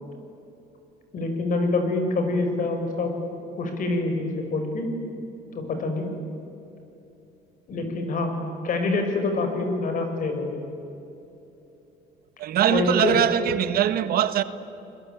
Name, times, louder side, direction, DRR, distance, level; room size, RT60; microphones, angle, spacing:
voice 1, 1.1-3.1 3.6-4.9 5.5-6.1 7.7-8.3 8.6-10.5 12.7-13.2, left 3 dB, 50° left, 6.1 m, -26 dB
voice 2, 12.4-14.4, right 10 dB, 65° right, 1.3 m, -22 dB
30.0 x 21.5 x 9.2 m
cardioid pair, 110°, 17 cm